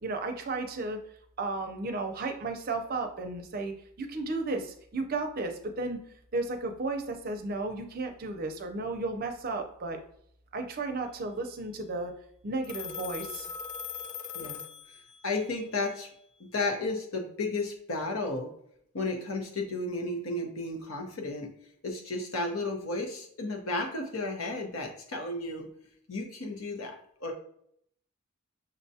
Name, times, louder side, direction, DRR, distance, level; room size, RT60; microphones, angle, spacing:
voice 1, 0.0-1.0 1.4-6.0 6.3-10.0 10.5-12.1 12.4-13.5, right 3 dB, 40° right, 5 dB, 0.5 m, -34 dB
Telephone, 12.6-15.4, left 7 dB, 35° left, 0.4 m, -40 dB
voice 2, 15.2-16.1 16.4-18.5 18.9-21.5 21.8-25.7 26.1-27.3, left 2 dB, 70° left, 1 dB, 0.9 m, -33 dB
6.4 x 2.3 x 2.7 m, 0.69 s
head